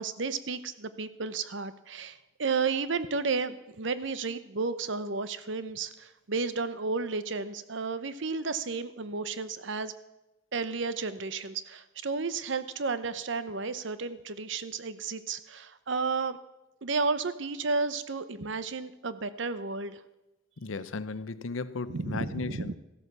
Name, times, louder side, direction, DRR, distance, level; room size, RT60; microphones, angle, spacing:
voice 1, 0.0-9.9 10.5-16.4 16.8-20.0 21.9-22.8, right 4 dB, 70° right, 13 dB, 0.8 m, -32 dB
voice 2, 20.6-22.8, left 3 dB, 85° left, 15 dB, 0.7 m, -36 dB
14.0 x 12.5 x 6.8 m, 0.99 s
head